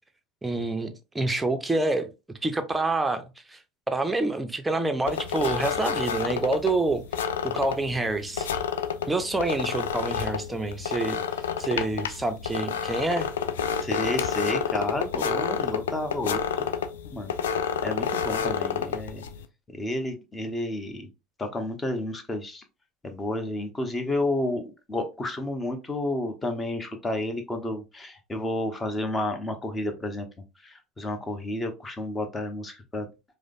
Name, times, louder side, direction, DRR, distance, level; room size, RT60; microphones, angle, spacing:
voice 1, 0.4-2.1 2.4-3.6 3.9-7.0 7.4-8.5 9.1-11.2 11.6-13.3, right 2 dB, 10° right, 0.6 m, -27 dB
Steam controller creaks, 5.1-19.4, left 7 dB, 70° left, 0.4 m, -30 dB
voice 2, 13.8-16.4 17.1-17.3 17.8-19.2 19.7-21.1 21.4-22.6 23.0-24.6 24.9-30.3 30.6-33.1, left 1 dB, 20° left, 0.9 m, -31 dB
4.8 x 2.1 x 2.5 m
figure-of-eight pair, 70°, 0 cm